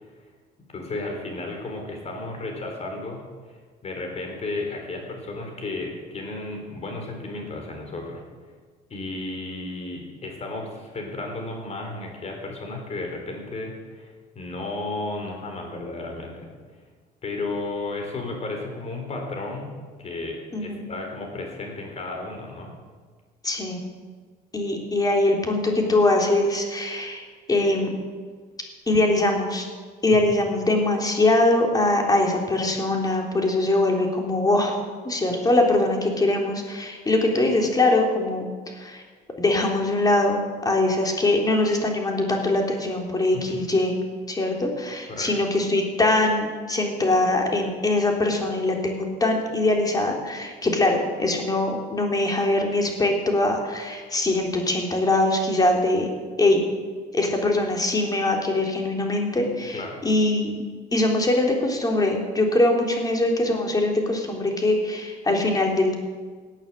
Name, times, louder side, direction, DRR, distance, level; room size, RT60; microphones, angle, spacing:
voice 1, 0.7-8.2 8.9-16.5 17.2-19.7 20.0-22.7 30.1-30.4 43.3-43.6 45.1-45.3 59.7-60.0, left 2 dB, 40° left, 2 dB, 4.4 m, -33 dB
voice 2, 20.5-20.8 23.4-23.8 24.5-27.9 28.9-29.7 30.0-34.7 35.0-38.5 38.7-39.0 39.4-43.9 44.3-56.1 56.4-56.6 57.1-60.6 60.9-65.9, left 2 dB, 20° left, 2 dB, 3.2 m, -22 dB
17.5 x 9.0 x 7.7 m, 1.5 s
cardioid pair, 110°, 17 cm